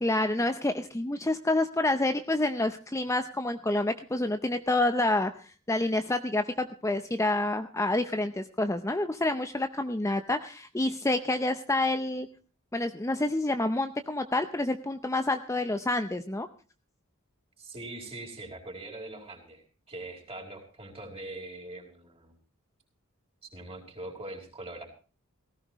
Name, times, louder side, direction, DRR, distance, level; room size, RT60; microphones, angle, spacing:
voice 1, 0.0-12.3 12.7-16.5, left 2 dB, 15° left, 8 dB, 0.7 m, -28 dB
voice 2, 17.6-22.4 23.5-24.8, right 2 dB, 30° right, 1 dB, 4.8 m, -42 dB
18.0 x 15.5 x 3.1 m, 0.37 s
head